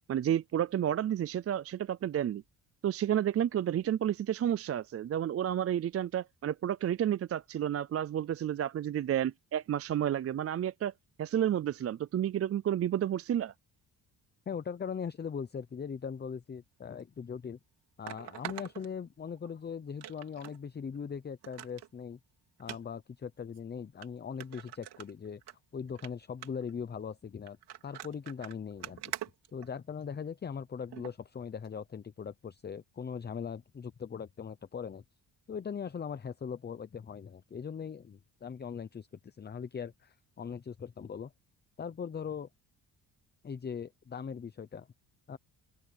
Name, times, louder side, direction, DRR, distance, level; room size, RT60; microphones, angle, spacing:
voice 1, 0.1-2.4 2.8-10.9 11.2-13.5, right 10 dB, 40° right, 0.4 m, -31 dB
voice 2, 14.5-17.6 18.0-22.2 22.6-25.4 25.7-27.6 27.8-29.0 29.5-35.0 35.5-41.3 41.8-42.5 43.4-44.9 45.3-45.4, left 6 dB, 25° left, 0.7 m, -40 dB
sound 1, 17.0-17.1 18.1-19.5 20.0-20.6 20.9-21.0 21.4-21.9 22.6-22.8 23.5-23.6 24.0-24.1 24.4-25.5 25.9-26.1 26.4-26.7 27.5-30.1 30.9-31.1 31.7-31.8, right 12 dB, 85° right, 2.9 m, -44 dB
open air
cardioid pair, 125°, 39 cm